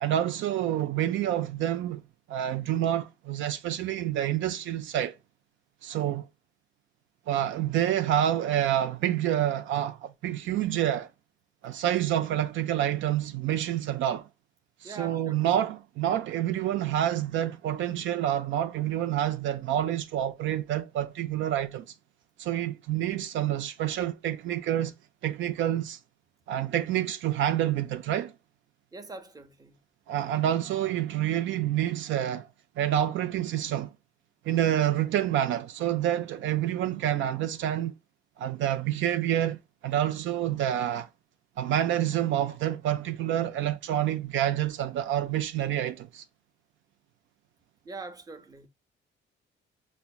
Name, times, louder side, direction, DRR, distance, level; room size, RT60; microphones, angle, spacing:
voice 1, 0.0-2.0 2.3-5.2 5.8-6.3 7.3-11.1 11.6-14.3 14.8-21.9 22.4-24.9 25.2-26.0 26.5-28.3 30.1-32.5 32.8-33.9 34.4-37.9 38.4-41.1 41.6-46.2, right 11 dB, 75° right, 0.4 m, -28 dB
voice 2, 14.8-15.4 28.9-29.8 47.8-48.7, right 3 dB, 20° right, 0.6 m, -43 dB
5.6 x 2.1 x 2.2 m
cardioid pair, 90°, 20 cm